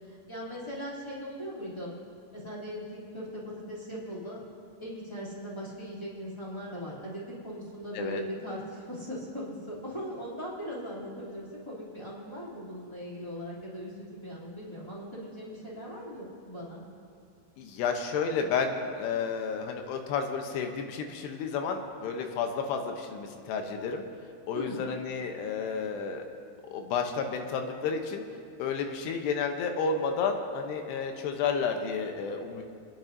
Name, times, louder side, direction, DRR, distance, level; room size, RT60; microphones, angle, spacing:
voice 1, 0.1-1.9 2.3-4.4 4.8-16.8 24.5-24.7, equal, 10° left, -7 dB, 2.0 m, -39 dB
voice 2, 17.6-24.0 24.5-26.2 26.7-28.2 28.6-32.6, left 5 dB, 80° left, 4 dB, 3.0 m, -31 dB
29.5 x 10.5 x 2.7 m, 2.3 s
omnidirectional pair, 4.8 m